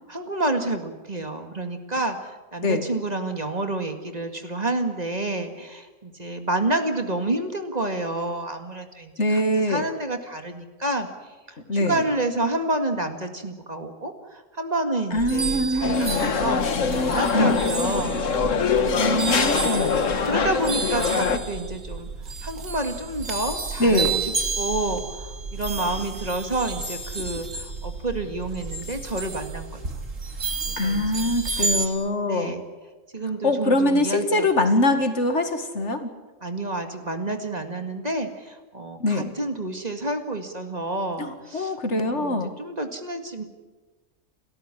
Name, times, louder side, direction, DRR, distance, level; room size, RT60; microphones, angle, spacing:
voice 1, 0.1-9.4 9.7-11.1 11.5-18.2 19.5-19.9 20.2-22.1 22.4-29.8 30.7-32.6 33.1-34.5 36.4-43.4, right 2 dB, 35° right, 6 dB, 2.1 m, -29 dB
voice 2, 9.2-9.8 11.7-12.0 15.1-16.3 17.3-17.6 19.0-20.0 23.8-24.2 30.8-32.6 33.4-36.1 39.0-39.3 41.2-42.5, left 1 dB, 65° left, 7 dB, 2.3 m, -23 dB
sound 1, 15.1-31.9, right 4 dB, 85° right, 2.9 m, -31 dB
sound 2, 15.8-21.4, left 5 dB, 80° left, 1.7 m, -23 dB
29.5 x 14.0 x 10.0 m, 1.2 s
omnidirectional pair, 1.3 m